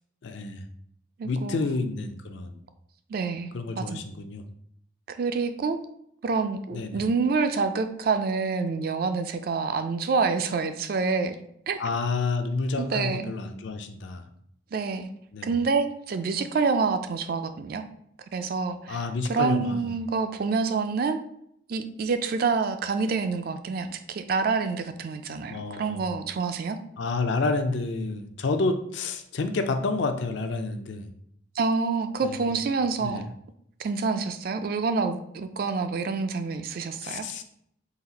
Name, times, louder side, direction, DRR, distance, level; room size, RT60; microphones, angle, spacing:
voice 1, 0.2-0.6 1.2-2.6 3.5-4.4 6.7-7.0 11.8-14.2 15.3-15.5 18.9-19.9 25.5-26.1 27.0-31.1 32.2-32.6 33.0-33.2 37.0-37.4, left 3 dB, 65° left, 7 dB, 0.4 m, -29 dB
voice 2, 1.2-1.6 3.1-3.5 3.8-4.0 5.1-5.8 6.2-11.4 11.7-11.8 12.8-13.3 14.7-15.1 15.4-17.8 18.3-21.2 21.7-26.8 31.6-33.3 33.8-37.3, right 4 dB, 45° right, 9 dB, 0.3 m, -27 dB
4.0 x 2.4 x 4.0 m, 0.71 s
head